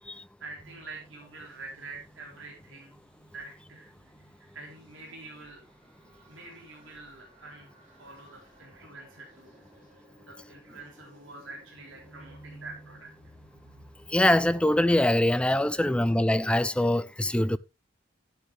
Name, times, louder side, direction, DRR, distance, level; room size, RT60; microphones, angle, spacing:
voice 1, 0.0-3.0 3.3-5.6 6.1-7.7 8.0-13.1 15.7-15.9, right 3 dB, 70° right, 4.0 m, -47 dB
sound 1, 0.6-17.0, right 1 dB, 25° right, 6.8 m, -56 dB
voice 2, 14.1-17.6, left 1 dB, 5° left, 0.4 m, -23 dB
12.0 x 9.4 x 3.4 m
head